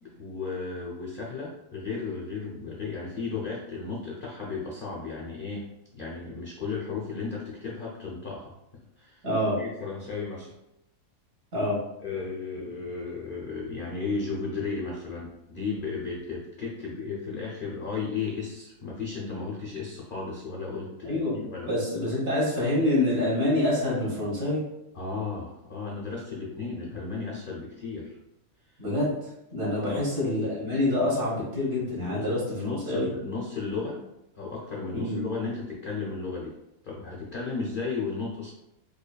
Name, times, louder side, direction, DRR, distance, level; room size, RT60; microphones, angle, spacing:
voice 1, 0.0-5.7 5.9-8.5 9.0-9.3 9.6-10.5 12.0-21.7 24.9-28.2 29.7-30.1 31.8-34.0 34.3-36.6 36.8-38.5, left 4 dB, 60° left, -4 dB, 0.5 m, -34 dB
voice 2, 9.2-9.6 11.5-11.8 21.0-24.6 28.8-33.1 34.9-35.2, left 1 dB, 60° right, -5 dB, 1.7 m, -27 dB
4.8 x 2.3 x 2.3 m, 0.87 s
omnidirectional pair, 1.7 m